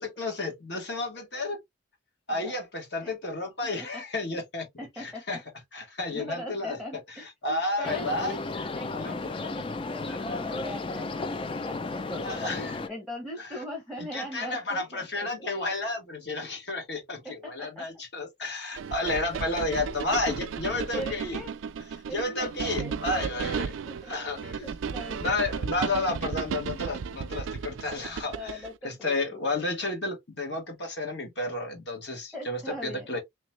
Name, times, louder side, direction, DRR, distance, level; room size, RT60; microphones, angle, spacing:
voice 1, 0.0-1.6 2.3-4.6 5.0-5.4 5.7-6.8 7.2-8.4 9.0-9.3 10.1-10.4 12.2-12.8 14.1-21.4 22.1-23.8 24.1-24.6 25.2-28.6 28.8-33.2, left 2 dB, 60° left, 1.4 m, -32 dB
voice 2, 4.8-5.4 6.1-8.4 8.7-15.5 17.2-17.9 19.3-19.4 20.4-20.5 20.9-21.5 22.1-23.6 23.9-24.1 24.4-25.7 28.3-29.7 32.3-33.1, left 1 dB, 5° left, 0.8 m, -41 dB
sound 1, 7.8-12.9, left 3 dB, 25° left, 0.4 m, -34 dB
sound 2, 18.8-28.7, right 6 dB, 80° right, 0.4 m, -34 dB
3.4 x 3.0 x 2.9 m
head